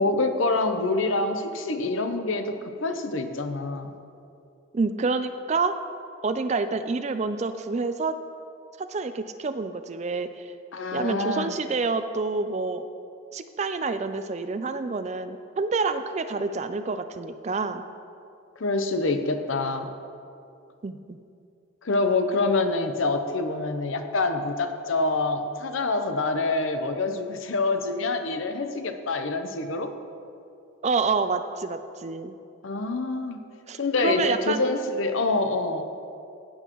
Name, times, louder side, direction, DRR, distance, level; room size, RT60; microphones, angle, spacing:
voice 1, 0.0-2.6 2.8-3.9 10.7-11.5 18.6-19.9 21.8-29.9 32.6-33.4 33.8-35.9, left 3 dB, 70° left, 7 dB, 0.7 m, -26 dB
voice 2, 4.7-5.7 6.2-8.1 8.8-10.5 10.9-12.9 13.3-17.8 20.8-21.0 30.8-32.3 33.7-34.7, right 4 dB, 30° right, 10 dB, 0.4 m, -28 dB
15.5 x 8.9 x 3.0 m, 2.5 s
head